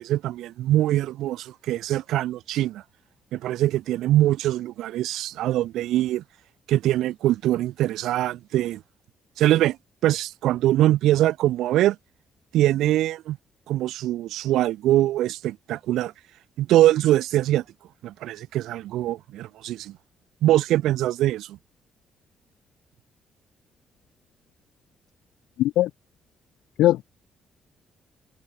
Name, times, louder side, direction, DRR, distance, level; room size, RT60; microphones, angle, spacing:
voice 1, 0.0-2.8 3.3-6.2 6.7-8.8 9.4-9.8 10.0-12.0 12.5-13.4 13.7-16.1 16.6-17.6 18.0-20.0 20.4-21.6, right 14 dB, 85° right, 2.5 m, -23 dB
voice 2, 25.6-25.9 26.8-27.0, left 14 dB, 85° left, 0.7 m, -19 dB
cardioid pair, 90°, 0 cm